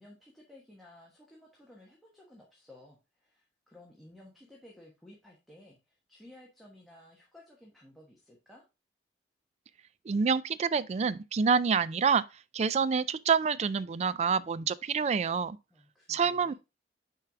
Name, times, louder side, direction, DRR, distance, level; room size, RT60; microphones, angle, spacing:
voice 1, 0.0-8.6 15.7-16.5, left 1 dB, ahead, 1.2 m, -55 dB
voice 2, 10.1-12.2 12.5-15.6 16.1-16.5, right 5 dB, 35° right, 0.3 m, -27 dB
6.7 x 4.7 x 3.4 m
head